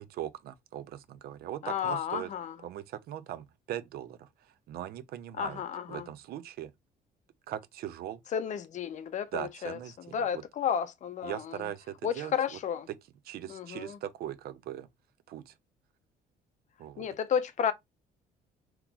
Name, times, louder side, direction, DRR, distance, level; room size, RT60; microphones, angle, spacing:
voice 1, 0.0-2.3 2.6-4.3 4.7-5.6 5.9-6.7 7.5-8.2 9.3-10.4 11.2-12.6 12.9-13.0 13.2-14.9 15.3-15.5 16.8-17.1, right 11 dB, 65° right, 0.5 m, -40 dB
voice 2, 1.6-2.5 5.4-6.1 8.3-9.8 10.1-11.6 12.0-12.9 13.5-14.0 17.0-17.7, left 8 dB, 45° left, 0.5 m, -32 dB
3.8 x 2.9 x 2.3 m
cardioid pair, 110°, 17 cm